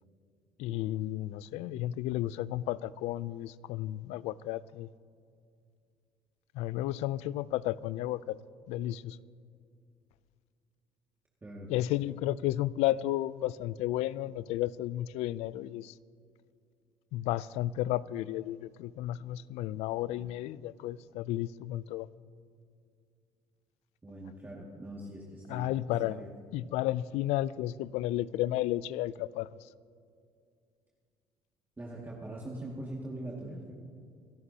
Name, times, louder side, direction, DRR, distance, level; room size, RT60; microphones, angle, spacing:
voice 1, 0.6-4.9 6.5-8.4 8.7-9.2 11.7-15.9 17.1-22.1 25.5-26.2 26.5-29.5, left 14 dB, 80° left, 0.4 m, -33 dB
voice 2, 24.0-26.3 31.8-33.7, right 1 dB, 20° right, 2.1 m, -42 dB
25.5 x 12.5 x 2.8 m
cardioid pair, 95°, 11 cm